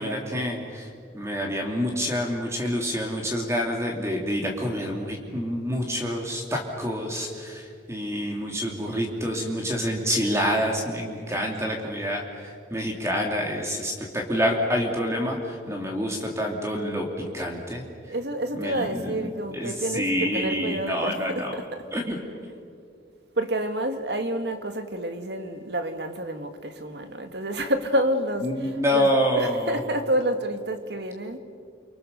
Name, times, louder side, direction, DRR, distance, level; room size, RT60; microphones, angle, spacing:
voice 1, 0.0-17.1 17.3-18.1 18.5-21.5 21.9-22.2 28.4-29.8, equal, 15° right, 1 dB, 2.7 m, -27 dB
voice 2, 18.0-21.9 23.4-31.4, right 1 dB, 60° right, 7 dB, 2.0 m, -29 dB
29.5 x 24.5 x 6.8 m, 2.2 s
head